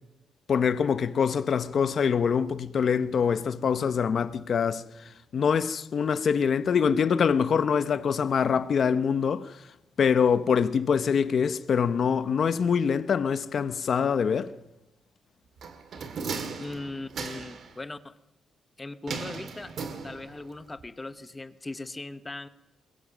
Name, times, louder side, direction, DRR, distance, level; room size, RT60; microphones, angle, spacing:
voice 1, 0.5-4.8 5.3-9.5 10.0-14.5, left 6 dB, 45° left, 0.8 m, -24 dB
sound 1, 15.6-17.7 19.1-20.5 20.8-20.9, right 5 dB, 50° right, 2.0 m, -36 dB
voice 2, 16.6-18.2 18.8-19.7 20.0-22.5, left 2 dB, 15° left, 0.8 m, -39 dB
22.0 x 22.0 x 6.2 m
wide cardioid pair, 175°, 0 cm